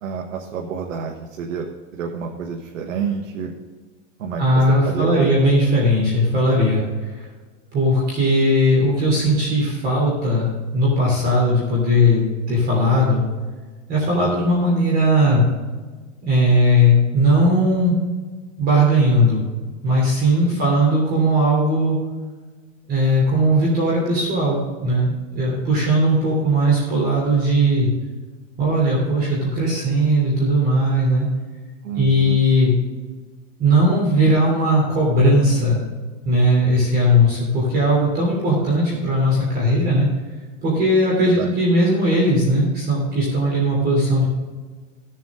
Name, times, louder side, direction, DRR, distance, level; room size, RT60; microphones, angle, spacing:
voice 1, 0.0-1.7 1.9-3.5 4.2-5.3 20.5-20.7 31.8-32.4 41.2-41.5, right 6 dB, 90° right, 1 dB, 1.5 m, -28 dB
voice 2, 4.4-7.3 7.7-10.5 10.7-13.2 13.9-15.5 16.2-17.9 18.6-19.4 19.8-22.0 22.9-27.9 28.6-31.2 31.9-32.8 33.6-35.8 36.2-40.1 40.6-44.2, equal, 25° right, -4 dB, 3.2 m, -18 dB
16.0 x 7.3 x 3.8 m, 1.4 s
supercardioid pair, 160°, 38 cm